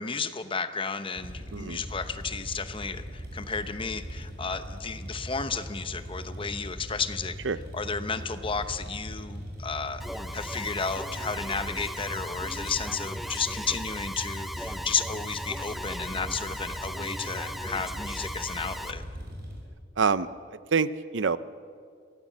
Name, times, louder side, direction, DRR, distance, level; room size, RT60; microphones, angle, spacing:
voice 1, 0.0-7.4 7.7-19.0, left 5 dB, 30° left, 10 dB, 0.9 m, -33 dB
sound 1, 1.1-19.6, equal, 60° right, 5.6 m, -40 dB
Alarm, 10.0-18.9, equal, ahead, 0.7 m, -38 dB
voice 2, 20.0-20.3 20.7-21.4, right 5 dB, 85° right, 16 dB, 0.7 m, -25 dB
23.5 x 16.5 x 7.4 m, 2.2 s
head